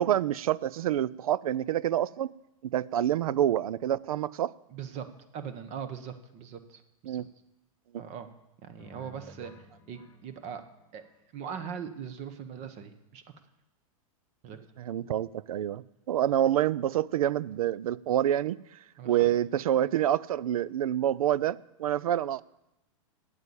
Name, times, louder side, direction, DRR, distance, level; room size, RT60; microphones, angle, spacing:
voice 1, 0.0-2.3 2.7-4.5 7.1-7.3 14.8-18.6 19.0-22.4, right 11 dB, 85° right, 0.4 m, -27 dB
voice 2, 4.7-5.1 5.3-7.2 7.9-8.3 8.6-10.6 10.9-11.0 11.3-13.2 14.4-14.6 19.0-19.4, right 7 dB, 40° right, 1.0 m, -40 dB
sound 1, 8.8-11.7, left 2 dB, 20° left, 1.2 m, -55 dB
8.8 x 8.4 x 8.6 m
hypercardioid pair, 130°, 18 cm